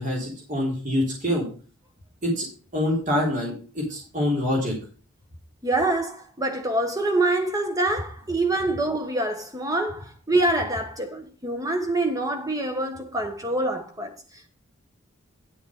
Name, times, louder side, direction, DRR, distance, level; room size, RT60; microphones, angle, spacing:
voice 1, 0.0-1.5 2.2-2.5 2.7-4.7, left 1 dB, 35° right, 3.5 m, -25 dB
voice 2, 5.6-14.1, right 2 dB, 15° right, 1.3 m, -25 dB
9.9 x 7.1 x 5.1 m
head